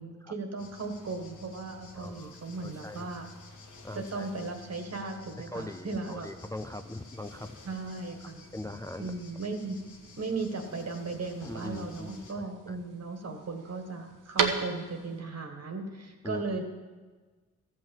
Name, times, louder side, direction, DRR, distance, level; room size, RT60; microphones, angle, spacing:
voice 1, 0.0-3.2 3.9-6.3 7.6-8.5 9.0-9.8 10.2-16.6, right 3 dB, 55° right, 4 dB, 1.7 m, -37 dB
sound 1, 0.6-12.3, left 3 dB, 75° left, 1.7 m, -52 dB
voice 2, 1.9-2.4 2.6-3.1 3.8-4.3 5.5-7.6 8.5-9.1 11.4-12.8 16.2-16.5, left 2 dB, 10° left, 7 dB, 0.4 m, -41 dB
sound 2, 6.7-15.2, right 5 dB, 90° right, 1.1 m, -39 dB
14.0 x 5.9 x 7.1 m, 1.3 s
cardioid pair, 85°, 31 cm